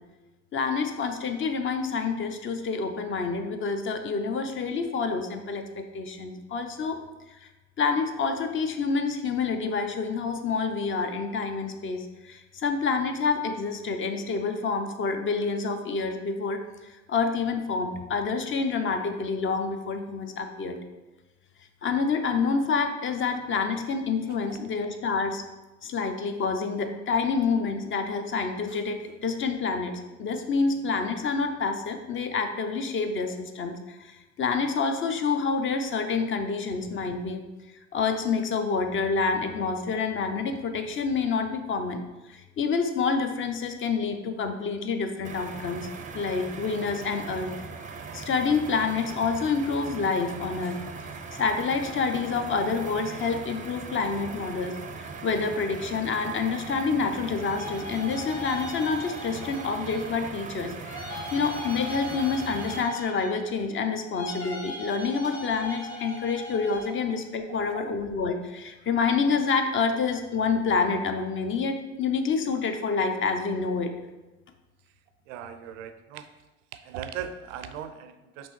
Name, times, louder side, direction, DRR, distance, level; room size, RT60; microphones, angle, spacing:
voice 1, 0.5-7.0 7.3-7.5 7.8-20.8 21.8-25.4 25.8-29.9 30.2-37.4 37.9-42.0 42.3-45.9 46.1-47.5 48.1-60.7 61.3-73.9, left 4 dB, 35° left, 6 dB, 0.6 m, -28 dB
voice 2, 24.3-24.6 66.9-67.0 67.5-67.9 75.3-76.3 76.7-78.5, right 8 dB, 80° right, 9 dB, 0.5 m, -39 dB
sound 1, 45.2-62.8, right 5 dB, 20° right, 0.5 m, -40 dB
sound 2, 57.4-60.2 60.8-63.6 64.1-67.1, left 2 dB, 75° left, 1.1 m, -39 dB
5.2 x 3.1 x 3.1 m, 1.1 s
hypercardioid pair, 65°, 37 cm